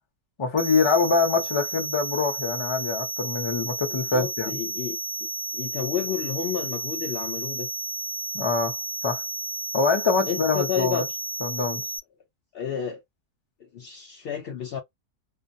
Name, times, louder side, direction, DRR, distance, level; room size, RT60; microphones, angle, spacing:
voice 1, 0.4-4.6 8.3-8.7 9.0-9.2 9.7-11.0 11.4-11.8, left 4 dB, 35° left, 0.5 m, -24 dB
sound 1, 0.6-12.0, right 3 dB, 60° right, 0.7 m, -32 dB
voice 2, 3.9-5.3 5.5-7.7 10.3-11.1 12.5-13.0 13.6-14.8, left 8 dB, 85° left, 0.5 m, -31 dB
2.3 x 2.1 x 2.6 m
omnidirectional pair, 1.5 m